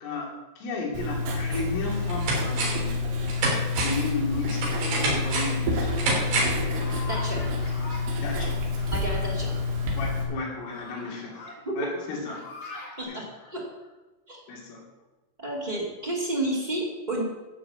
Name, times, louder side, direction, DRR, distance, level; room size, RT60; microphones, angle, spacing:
voice 1, 0.0-3.0 3.8-6.0 8.2-8.6 10.0-11.4 11.8-12.4 13.1-13.2 14.5-14.8, left 3 dB, 75° left, -2 dB, 5.3 m, -34 dB
Writing, 0.9-10.2, left 3 dB, 80° right, 4.9 m, -28 dB
sound 1, 1.8-2.9 3.3-6.7 7.0-7.1, right 2 dB, 60° right, 5.4 m, -28 dB
sound 2, 6.1-8.1 8.8-9.6 10.3-11.6 12.0-13.0, left 3 dB, 55° left, 5.5 m, -43 dB
voice 2, 7.1-7.5 8.9-9.5 11.6-11.8 13.0-13.7 14.3-14.4 15.4-17.2, right 1 dB, 35° right, -4 dB, 0.6 m, -31 dB
14.0 x 5.8 x 8.1 m, 1.1 s
omnidirectional pair, 5.9 m